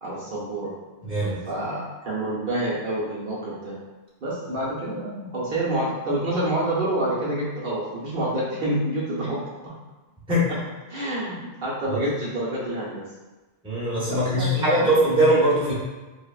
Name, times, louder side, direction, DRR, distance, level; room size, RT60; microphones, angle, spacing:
voice 1, 0.0-0.7 1.5-3.8 4.2-9.4 9.6-9.7 10.5-10.6 10.9-13.1 14.1-14.9, right 1 dB, 60° right, -7 dB, 0.7 m, -28 dB
voice 2, 1.0-1.4 10.3-10.5 11.9-12.0 13.6-15.7, right 1 dB, 5° right, -8 dB, 0.6 m, -21 dB
3.2 x 2.0 x 2.3 m, 1.2 s
omnidirectional pair, 1.1 m